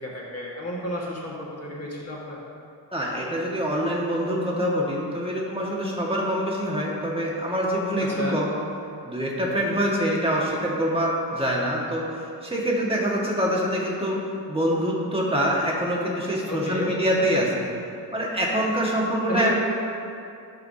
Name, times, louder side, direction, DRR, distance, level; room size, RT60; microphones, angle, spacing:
voice 1, 0.0-2.4 8.1-8.4 16.5-16.9 19.3-19.5, equal, 35° left, -4 dB, 1.7 m, -31 dB
voice 2, 2.9-8.5 9.0-17.6 18.1-19.5, equal, 15° right, -4 dB, 1.7 m, -25 dB
13.5 x 5.8 x 2.8 m, 2.6 s
wide cardioid pair, 80°, 43 cm